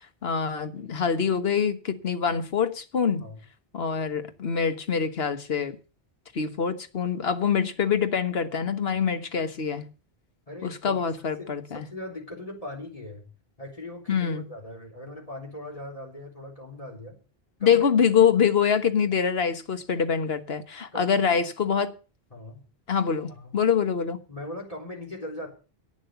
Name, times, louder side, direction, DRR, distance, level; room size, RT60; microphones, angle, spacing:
voice 1, 0.2-3.3 3.7-5.8 6.3-9.9 10.6-11.9 14.1-14.5 17.6-21.9 22.9-24.2, left 7 dB, 70° left, 1.5 m, -25 dB
voice 2, 10.5-13.3 13.6-17.2 17.6-17.8 20.9-21.4 22.3-22.6 23.3-23.5 24.3-25.5, left 1 dB, 35° left, 4.0 m, -40 dB
11.0 x 8.8 x 6.9 m
omnidirectional pair, 1.1 m